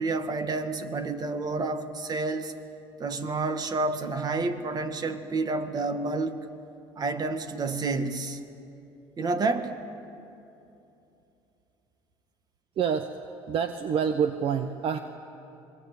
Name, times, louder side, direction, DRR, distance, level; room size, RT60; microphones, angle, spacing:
voice 1, 0.0-2.5 3.0-6.4 7.0-8.4 9.2-9.7, right 3 dB, 35° right, 8 dB, 1.9 m, -29 dB
voice 2, 12.8-13.2 13.5-15.0, right 7 dB, 55° right, 8 dB, 1.1 m, -27 dB
27.0 x 22.0 x 8.5 m, 2.8 s
supercardioid pair, 100°, 11 cm